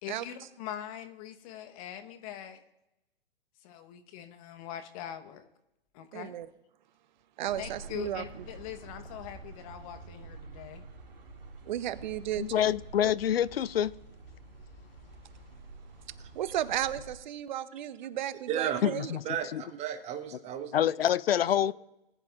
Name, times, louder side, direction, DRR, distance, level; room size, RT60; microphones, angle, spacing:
voice 1, 0.0-2.6 3.6-5.5 5.9-6.3 7.6-10.8, left 10 dB, 40° left, 1.1 m, -42 dB
voice 2, 6.1-6.5 7.4-8.4 11.7-12.5 16.3-19.1, right 12 dB, 50° right, 0.8 m, -34 dB
sound 1, 7.5-17.2, right 3 dB, 70° right, 2.8 m, -48 dB
voice 3, 12.4-13.9 18.8-19.2 19.5-19.6 20.7-21.7, left 10 dB, 80° left, 0.5 m, -26 dB
voice 4, 18.5-18.9 19.2-20.9, right 9 dB, 20° right, 1.1 m, -34 dB
19.5 x 10.5 x 2.5 m
hypercardioid pair, 120°, 29 cm